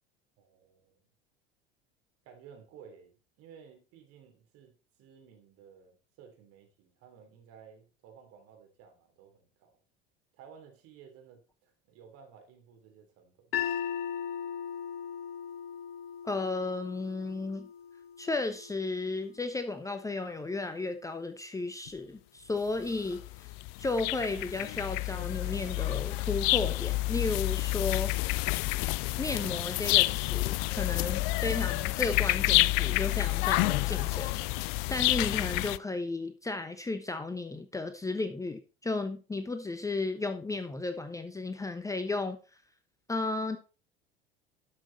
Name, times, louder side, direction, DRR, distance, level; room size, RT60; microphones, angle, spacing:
voice 1, 0.4-1.0 2.2-9.8 10.4-13.6, right 7 dB, 50° right, 3.4 m, -55 dB
sound 1, 13.5-19.7, left 9 dB, 80° left, 0.9 m, -38 dB
voice 2, 16.2-17.7 18.2-23.5 23.8-28.4 29.2-34.4 34.9-42.4 43.1-43.6, left 3 dB, 10° left, 0.9 m, -34 dB
sound 2, 21.9-22.0 22.9-35.8, left 20 dB, 50° left, 0.4 m, -29 dB
12.0 x 6.2 x 4.1 m
figure-of-eight pair, 75°, 30 cm